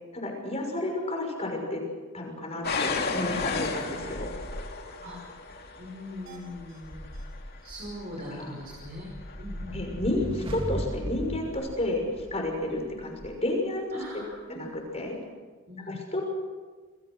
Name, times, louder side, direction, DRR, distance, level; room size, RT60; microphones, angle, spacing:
voice 1, 0.1-1.8 2.1-4.3 8.3-8.5 9.7-13.9 14.5-15.2 15.9-16.3, left 1 dB, 30° left, 2 dB, 6.2 m, -31 dB
sound 1, 2.6-11.4 12.2-12.6 13.2-13.3, left 3 dB, 45° left, 2.7 m, -35 dB
voice 2, 5.8-7.1 7.6-9.1 9.4-9.8 12.7-12.8 13.9-14.7 15.7-16.0, left 1 dB, 45° right, -3 dB, 5.7 m, -41 dB
sound 2, 6.3-6.8 7.1-7.3 7.6-7.7 8.0-8.1 11.5-11.6, right 5 dB, 65° right, 7.5 m, -52 dB
sound 3, 8.7-12.5, equal, 25° right, 2.5 m, -37 dB
28.5 x 21.0 x 6.4 m, 1.4 s
head